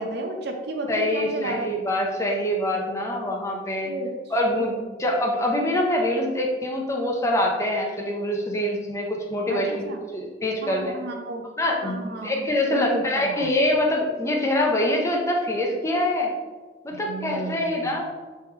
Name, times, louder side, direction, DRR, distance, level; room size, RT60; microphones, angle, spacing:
voice 1, 0.0-1.7 3.8-4.1 4.5-4.7 9.5-10.0 10.6-11.4 11.8-13.5 17.1-18.0, right 2 dB, 65° right, 4 dB, 0.6 m, -32 dB
voice 2, 0.9-3.9 4.3-9.9 10.1-10.9 11.6-16.3 16.8-18.1, left 1 dB, 15° left, 0 dB, 0.6 m, -25 dB
4.4 x 3.2 x 3.5 m, 1.3 s
head